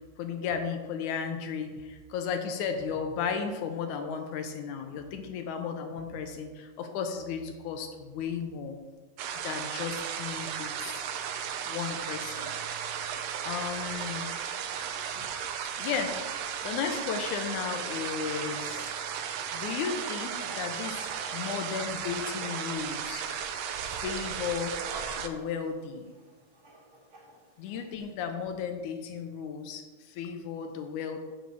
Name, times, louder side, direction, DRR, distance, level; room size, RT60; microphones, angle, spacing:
voice 1, 0.2-8.8 9.4-10.9 11.7-12.5 13.5-14.3 15.2-15.3 15.8-19.2 19.5-23.2 23.8-24.8 25.2-26.1 27.6-31.2, left 6 dB, 90° left, 6 dB, 2.3 m, -34 dB
sound 1, 9.2-25.3, right 8 dB, 75° right, 1.7 m, -35 dB
Writing, 17.7-28.1, right 1 dB, 35° right, 2.1 m, -49 dB
6.5 x 6.3 x 6.9 m, 1.3 s
omnidirectional pair, 3.4 m